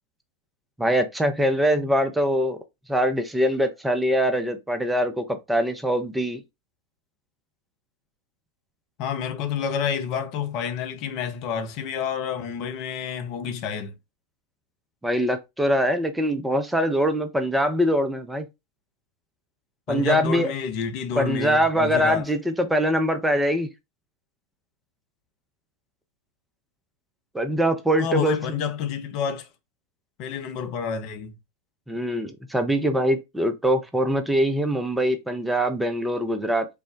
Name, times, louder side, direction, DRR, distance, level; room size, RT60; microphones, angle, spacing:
voice 1, 0.8-2.6 2.9-6.4 15.0-18.5 19.9-20.5 21.2-23.7 27.3-28.3 31.9-36.7, equal, 5° right, 0.5 m, -23 dB
voice 2, 9.0-13.9 19.9-22.2 28.0-29.5 30.2-31.4, left 7 dB, 40° left, 0.6 m, -29 dB
3.4 x 2.1 x 4.3 m
figure-of-eight pair, 90°, 0 cm